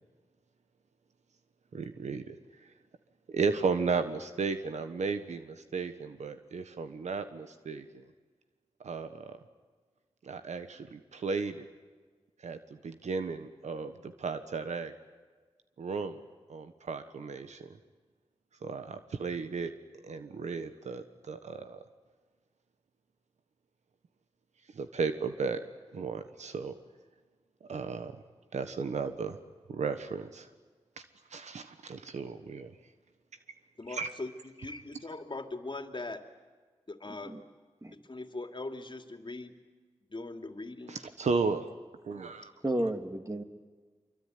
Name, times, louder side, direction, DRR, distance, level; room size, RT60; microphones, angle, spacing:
voice 1, 1.7-2.3 3.3-8.0 8.8-9.4 10.2-11.7 12.4-14.9 15.8-16.2 16.5-17.8 18.6-19.7 20.0-21.8 24.7-25.6 25.9-26.7 27.6-28.1 28.5-29.4 29.7-30.5 31.0-31.1 31.3-32.7 33.9-34.1 40.9-41.7 42.0-42.5, right 4 dB, 85° right, 9 dB, 1.3 m, -34 dB
voice 2, 33.8-36.3 36.9-37.4 37.9-39.6 40.1-41.0, left 2 dB, 45° left, 6 dB, 2.8 m, -41 dB
voice 3, 37.1-37.4 37.8-37.9 42.6-43.4, right 1 dB, 25° right, 6 dB, 2.9 m, -33 dB
25.5 x 24.0 x 9.6 m, 1.4 s
cardioid pair, 45°, 12 cm